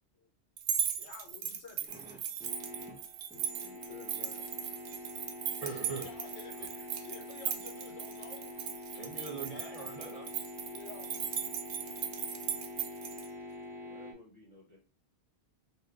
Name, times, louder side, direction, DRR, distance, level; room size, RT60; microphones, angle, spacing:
sound 1, 0.6-13.3, right 9 dB, 80° right, 0.9 m, -38 dB
voice 1, 0.9-2.2 4.2-4.9 5.6-8.5 10.5-11.2 14.5-14.8, left 5 dB, 80° left, 1 dB, 1.2 m, -52 dB
sound 2, 1.9-14.1, left 2 dB, 5° right, 0.7 m, -46 dB
voice 2, 3.3-4.4 13.8-14.8, left 2 dB, 30° left, -5 dB, 1.0 m, -55 dB
voice 3, 5.6-6.1 8.9-10.2, right 5 dB, 45° right, 0 dB, 0.6 m, -41 dB
4.0 x 2.5 x 3.3 m, 0.37 s
omnidirectional pair, 1.2 m